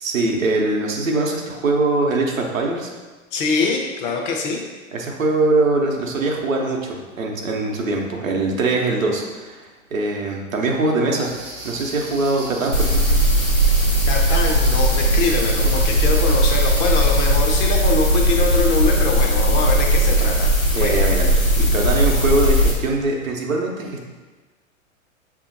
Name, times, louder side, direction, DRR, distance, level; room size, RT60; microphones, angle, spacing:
voice 1, 0.0-2.9 4.9-11.3 11.6-13.2 15.6-15.8 20.7-21.3 21.6-24.1, right 2 dB, 75° right, 0 dB, 0.8 m, -22 dB
voice 2, 3.3-4.6 14.1-20.5 20.8-21.1, left 4 dB, 30° left, 1 dB, 0.7 m, -23 dB
sound 1, 11.2-17.4, right 2 dB, 15° right, 0.3 m, -37 dB
sound 2, 12.7-22.7, right 1 dB, 90° left, 1.1 m, -18 dB
6.7 x 2.8 x 2.6 m, 1.3 s
figure-of-eight pair, 95°, 40 cm